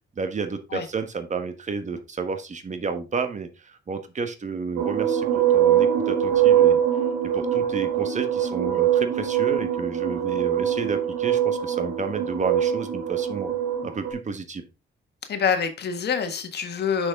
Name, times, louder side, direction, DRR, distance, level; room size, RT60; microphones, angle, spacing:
voice 1, 0.1-6.8 7.2-13.6 13.8-14.6, right 5 dB, 35° right, 8 dB, 1.3 m, -31 dB
sound 1, 4.8-14.1, right 10 dB, 80° right, 2.0 m, -23 dB
voice 2, 15.3-17.1, left 6 dB, 55° left, 7 dB, 1.6 m, -26 dB
6.4 x 6.1 x 3.6 m, 0.28 s
cardioid pair, 90°, 20 cm